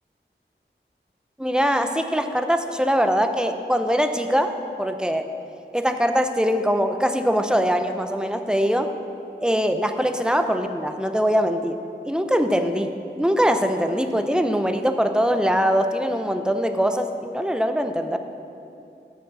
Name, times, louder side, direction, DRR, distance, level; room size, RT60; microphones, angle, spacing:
voice 1, 1.4-4.5 4.8-5.2 5.7-8.9 9.4-11.8 12.0-18.2, equal, 5° right, 7 dB, 0.5 m, -22 dB
7.4 x 6.1 x 7.1 m, 2.7 s
wide cardioid pair, 55°, 19 cm